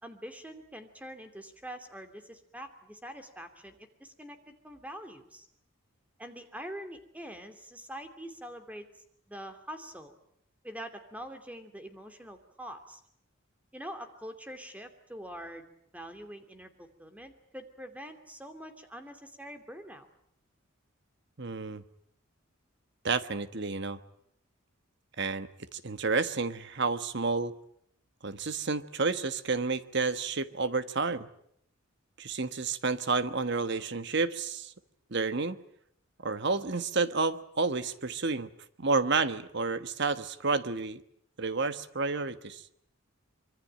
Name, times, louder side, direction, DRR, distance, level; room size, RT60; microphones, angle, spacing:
voice 1, 0.0-5.5 6.2-8.9 9.3-10.2 10.6-13.0 13.7-15.7 15.9-20.1, equal, 5° right, 7 dB, 2.7 m, -44 dB
voice 2, 21.4-21.8 23.0-24.0 25.2-27.5 28.2-31.3 32.2-34.7 35.1-35.6 36.2-38.5 38.8-41.0 41.4-42.6, right 4 dB, 55° right, 12 dB, 1.3 m, -30 dB
25.0 x 24.0 x 8.9 m, 0.70 s
head